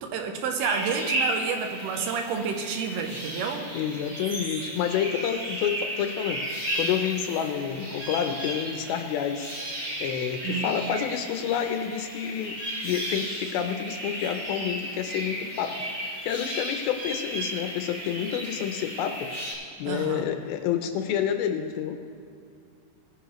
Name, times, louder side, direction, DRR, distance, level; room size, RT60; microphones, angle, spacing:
voice 1, 0.0-3.8 10.4-10.7 19.9-20.3, right 6 dB, 80° right, 5 dB, 2.8 m, -30 dB
sound 1, 0.6-19.5, right 1 dB, 30° right, 2.7 m, -34 dB
voice 2, 3.7-6.4 6.8-9.5 10.0-12.6 12.8-19.3 19.8-22.0, left 9 dB, 80° left, 6 dB, 2.4 m, -29 dB
19.0 x 9.7 x 3.1 m, 2.5 s
omnidirectional pair, 4.6 m